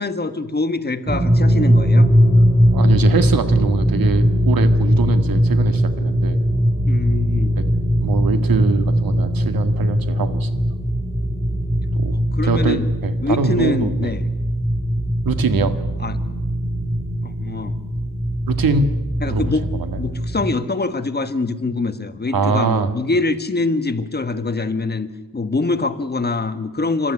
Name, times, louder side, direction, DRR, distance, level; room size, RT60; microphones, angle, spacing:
voice 1, 0.0-2.1 6.8-7.5 12.1-12.8 13.2-14.2 16.0-16.2 17.2-17.8 19.2-19.6 20.0-27.1, left 3 dB, 25° left, 9 dB, 1.5 m, -24 dB
sound 1, 1.1-20.5, equal, 15° right, 2.7 m, -19 dB
voice 2, 2.7-6.4 7.3-7.6 8.0-10.5 12.0-12.2 12.4-14.1 15.3-15.8 18.5-19.4 19.7-20.0 22.3-22.9, right 4 dB, 65° right, 8 dB, 1.9 m, -22 dB
29.0 x 13.5 x 9.8 m, 1.2 s
cardioid pair, 105°, 38 cm